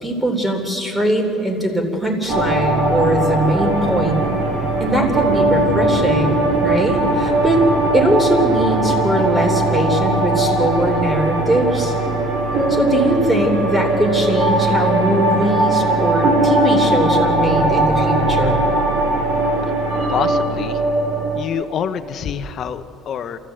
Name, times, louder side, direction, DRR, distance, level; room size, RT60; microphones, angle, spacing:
voice 1, 0.0-4.2 4.8-7.6 7.9-11.9 12.7-18.6, right 1 dB, 5° right, 3 dB, 3.6 m, -20 dB
sound 1, 2.3-21.4, right 2 dB, 50° right, 4.5 m, -19 dB
voice 2, 20.1-20.8 21.4-23.4, left 8 dB, 45° left, 9 dB, 1.1 m, -26 dB
28.0 x 14.0 x 8.0 m, 2.9 s
cardioid pair, 125°, 0 cm